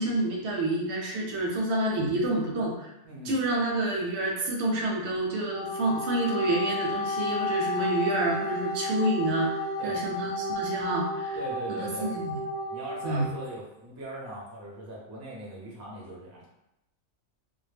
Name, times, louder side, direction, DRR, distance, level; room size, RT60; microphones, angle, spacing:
voice 1, 0.0-2.9 3.3-9.5 9.8-11.4 11.7-12.3 13.0-13.3, right 1 dB, 65° right, -1 dB, 0.8 m, -28 dB
voice 2, 3.0-3.4 9.8-10.0 11.3-12.1 12.7-16.5, right 1 dB, 20° right, -5 dB, 0.4 m, -40 dB
Wind instrument woodwind instrument, 5.4-13.5, left 1 dB, 75° left, 0.9 m, -32 dB
2.2 x 2.1 x 3.3 m, 0.87 s
omnidirectional pair, 1.4 m